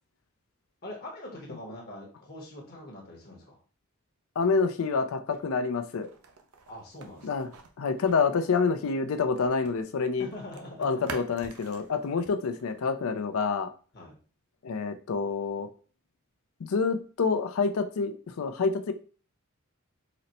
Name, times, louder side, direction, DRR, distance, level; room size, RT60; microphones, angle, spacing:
voice 1, 0.8-3.6 6.7-7.6 10.2-11.1 13.9-14.2, left 1 dB, 45° left, 0 dB, 1.0 m, -43 dB
voice 2, 4.4-6.1 7.2-7.5 7.8-10.3 10.8-13.7 14.6-15.7 16.6-18.9, left 4 dB, 70° left, 10 dB, 0.4 m, -27 dB
sound 1, 5.3-9.8 10.1-12.8, right 4 dB, 85° right, 0.6 m, -48 dB
4.0 x 2.1 x 4.1 m, 0.39 s
head